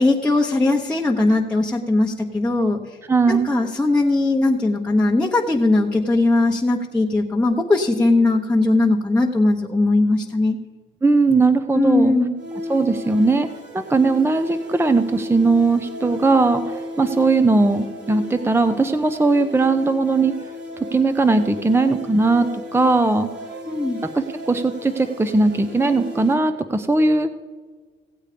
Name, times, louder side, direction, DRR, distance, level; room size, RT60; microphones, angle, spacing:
voice 1, 0.0-3.0 3.3-10.6 11.7-12.3 23.7-24.0, left 2 dB, 5° left, -3 dB, 1.0 m, -19 dB
voice 2, 3.1-3.5 11.0-12.1 12.7-13.5 13.7-20.3 20.9-23.3 24.1-27.4, right 3 dB, 10° right, 10 dB, 0.6 m, -19 dB
sound 1, 12.4-26.3, left 1 dB, 60° right, 2.4 m, -34 dB
16.5 x 8.2 x 5.1 m, 1.4 s
cardioid pair, 90°, 20 cm